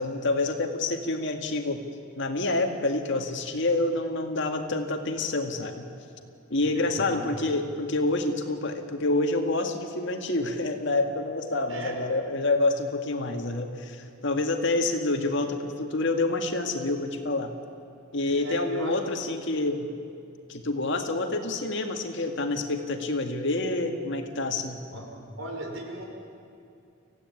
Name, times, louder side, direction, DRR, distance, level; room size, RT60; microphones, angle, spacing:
voice 1, 0.0-1.8 2.2-5.9 6.5-17.5 18.1-19.9 20.5-24.8, left 2 dB, 65° left, 4 dB, 2.1 m, -27 dB
voice 2, 6.6-7.3 11.7-12.0 18.3-19.0 24.9-25.1 25.4-26.0, right 1 dB, 80° right, 1 dB, 5.0 m, -37 dB
26.0 x 16.0 x 9.7 m, 2.5 s
head